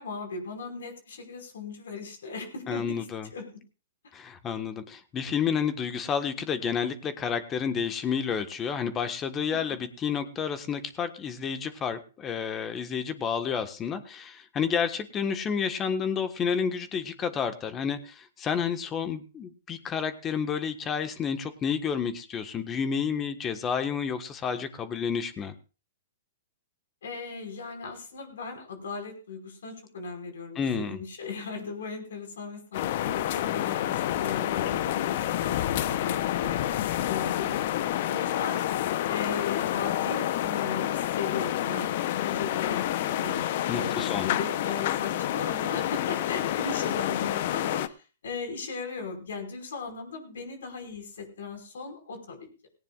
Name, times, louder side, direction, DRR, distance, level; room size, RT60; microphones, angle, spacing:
voice 1, 0.0-3.1 3.3-3.6 9.5-9.8 27.0-37.6 38.1-38.6 39.1-41.9 42.2-52.5, left 4 dB, 70° left, 5 dB, 5.4 m, -37 dB
voice 2, 2.7-3.3 4.1-25.5 30.5-31.0 43.7-44.3, left 7 dB, 25° left, 9 dB, 1.5 m, -30 dB
sound 1, 32.7-47.9, left 12 dB, 55° left, 0.9 m, -28 dB
18.0 x 18.0 x 2.5 m, 0.35 s
hypercardioid pair, 120°, 0 cm